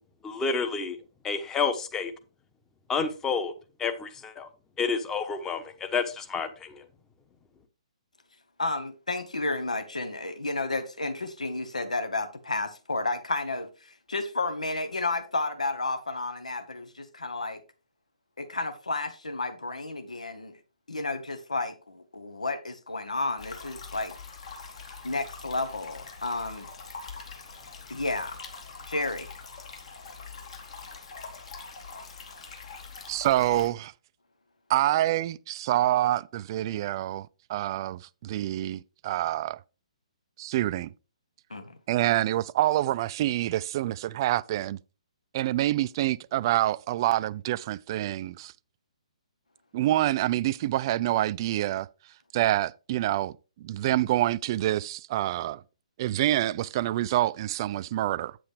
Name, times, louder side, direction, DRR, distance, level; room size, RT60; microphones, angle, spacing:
voice 1, 0.2-1.0 1.2-2.1 2.9-3.5 3.8-4.5 4.8-6.8, left 5 dB, 15° left, 1.0 m, -29 dB
voice 2, 8.6-17.6 18.4-20.6 20.9-24.1 25.0-26.7 27.9-28.4 28.9-29.3 41.5-41.8, left 2 dB, 85° left, 1.0 m, -32 dB
sound 1, 23.4-33.7, left 4 dB, 60° left, 2.5 m, -43 dB
voice 3, 33.1-33.9 34.7-39.6 40.4-40.9 41.9-44.8 45.3-48.5 49.7-51.9 52.3-53.3 53.6-55.6 56.0-58.4, right 14 dB, 40° right, 0.3 m, -26 dB
8.6 x 7.6 x 3.3 m
figure-of-eight pair, 130°, 4 cm